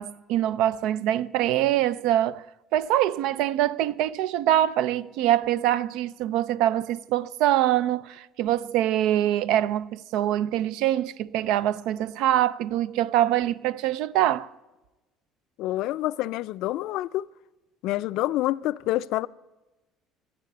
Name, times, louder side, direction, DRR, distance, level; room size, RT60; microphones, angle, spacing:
voice 1, 0.0-2.4 2.7-14.5, right 12 dB, 80° right, 0.4 m, -24 dB
voice 2, 15.6-17.2 17.8-19.3, left 15 dB, 70° left, 0.4 m, -27 dB
13.0 x 8.3 x 9.7 m
cardioid pair, 135°, 0 cm